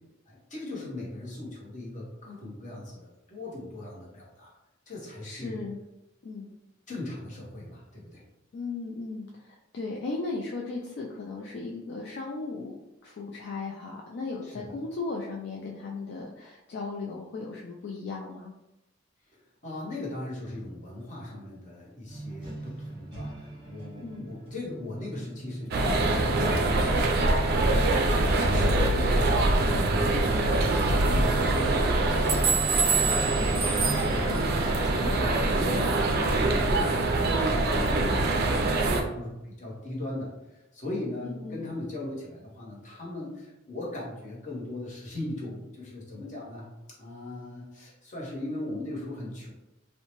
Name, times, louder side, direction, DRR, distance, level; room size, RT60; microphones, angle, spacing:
voice 1, 0.3-4.5 4.9-5.6 6.9-8.2 14.4-14.7 19.6-34.4 34.6-46.7 47.0-49.5, left 1 dB, 40° left, -4 dB, 0.9 m, -38 dB
voice 2, 5.2-5.8 6.2-6.5 8.5-12.8 13.0-18.5 24.0-24.3 41.2-41.7, left 3 dB, 55° left, -1 dB, 0.3 m, -36 dB
sound 1, 22.1-34.1, right 2 dB, 25° right, 0.8 m, -41 dB
sound 2, 25.7-39.0, right 2 dB, 50° right, 0.3 m, -24 dB
2.7 x 2.1 x 2.9 m, 0.93 s
head